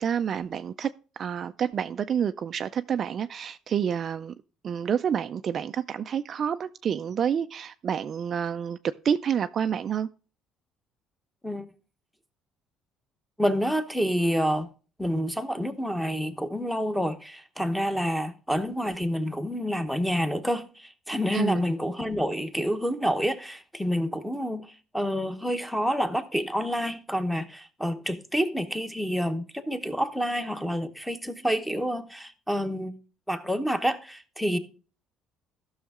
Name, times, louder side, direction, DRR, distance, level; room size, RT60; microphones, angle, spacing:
voice 1, 0.0-4.3 4.6-8.8 9.0-10.1 21.3-21.6, right 8 dB, 40° right, 0.3 m, -28 dB
voice 2, 13.4-14.7 15.0-32.9 33.3-34.6, equal, ahead, 0.9 m, -28 dB
14.5 x 6.3 x 3.6 m
cardioid pair, 145°, 0 cm